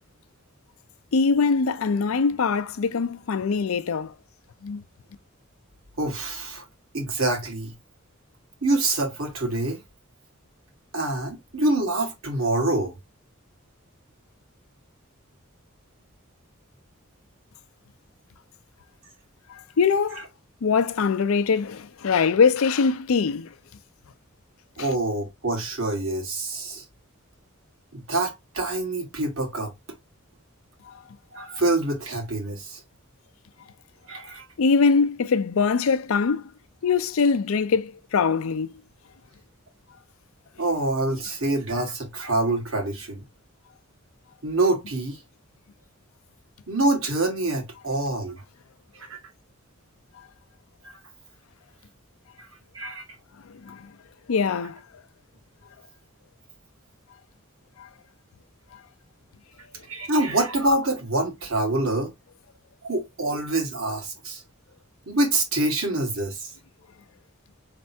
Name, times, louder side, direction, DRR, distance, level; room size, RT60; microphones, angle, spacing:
voice 1, 1.1-4.1 4.6-4.8 19.5-20.2 20.6-23.5 24.8-24.9 30.9-31.0 34.6-36.5 36.8-38.8 53.4-53.9 54.3-54.8 57.8-57.9 58.7-58.8, left 5 dB, 80° left, 0.5 m, -23 dB
voice 2, 6.0-6.6 6.9-7.7 8.6-9.8 10.9-13.0 24.8-26.8 27.9-29.7 31.3-32.8 34.1-34.4 40.6-43.2 44.4-45.2 46.7-48.3 49.0-49.2 50.8-51.0 52.7-53.0 59.9-62.1 62.8-64.4 65.1-66.5, right 2 dB, 75° right, 1.6 m, -26 dB
4.3 x 3.3 x 2.7 m
head